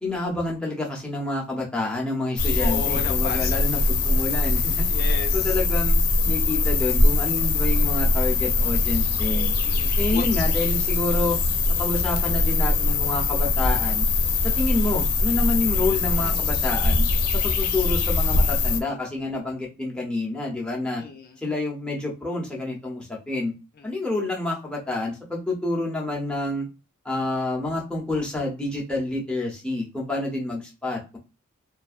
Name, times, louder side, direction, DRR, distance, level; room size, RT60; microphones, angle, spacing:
voice 1, 0.0-4.9 5.3-6.0 6.2-9.5 10.0-11.4 11.7-14.1 14.4-17.1 17.3-21.0 21.4-23.5 23.8-26.7 27.0-31.2, left 2 dB, 5° left, -3 dB, 0.6 m, -28 dB
sound 1, 2.4-18.8, left 3 dB, 85° left, 0.6 m, -22 dB
voice 2, 2.6-3.7 4.9-5.6 9.6-10.3 21.0-21.4 23.9-24.0, left 4 dB, 45° left, 4 dB, 0.4 m, -34 dB
2.4 x 2.2 x 2.4 m, 0.30 s
head